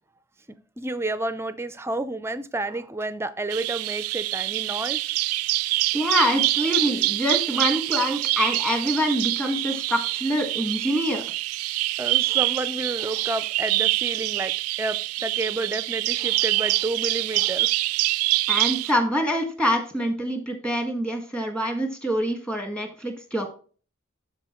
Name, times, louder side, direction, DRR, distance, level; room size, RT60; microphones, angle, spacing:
voice 1, 0.5-5.0 12.0-17.7, right 2 dB, 10° right, 0.5 m, -30 dB
Bird vocalization bird call bird song, 3.5-18.9, right 19 dB, 90° right, 0.3 m, -25 dB
voice 2, 5.9-11.2 18.5-23.5, equal, 5° left, 1.5 m, -25 dB
12.0 x 4.2 x 3.0 m
head